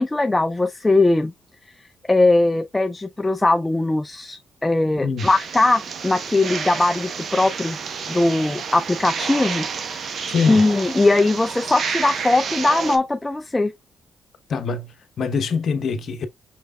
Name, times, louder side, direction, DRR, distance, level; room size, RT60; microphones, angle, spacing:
voice 1, 0.0-1.3 2.1-7.8 8.1-9.7 10.0-13.7, left 2 dB, 15° left, 0.4 m, -20 dB
sound 1, 5.2-13.0, right 6 dB, 55° right, 0.8 m, -30 dB
voice 2, 10.3-10.6 14.5-16.3, left 5 dB, 60° left, 0.8 m, -24 dB
5.8 x 3.3 x 2.3 m
cardioid pair, 90°, 0 cm